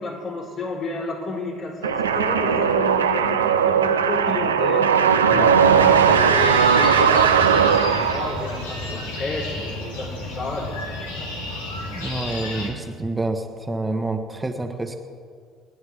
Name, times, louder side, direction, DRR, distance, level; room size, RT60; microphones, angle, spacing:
voice 1, 0.0-4.9 5.3-10.7 11.2-11.3, left 2 dB, 50° left, -4 dB, 4.1 m, -31 dB
sound 1, 1.8-8.6, right 7 dB, 85° right, 0.6 m, -18 dB
sound 2, 5.7-12.7, left 1 dB, 80° left, 2.1 m, -32 dB
voice 2, 11.9-13.4 13.7-14.9, right 2 dB, 15° right, 4 dB, 1.3 m, -27 dB
28.0 x 9.6 x 3.6 m, 2.1 s
figure-of-eight pair, 55°, 0 cm